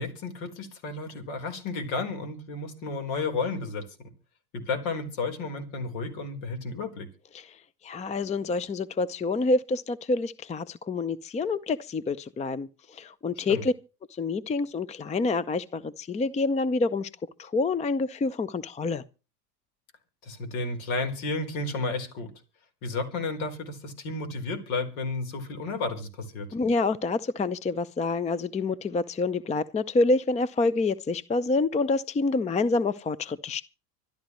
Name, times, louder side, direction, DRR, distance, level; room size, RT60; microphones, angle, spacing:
voice 1, 0.0-3.9 4.5-7.1 13.5-13.6 20.2-22.3 22.8-26.5, left 3 dB, 60° left, 4.3 m, -32 dB
voice 2, 7.8-12.7 12.9-13.7 14.2-17.1 17.4-19.0 26.5-33.6, left 3 dB, 15° left, 0.6 m, -27 dB
25.5 x 12.0 x 3.2 m
hypercardioid pair, 90°, 48 cm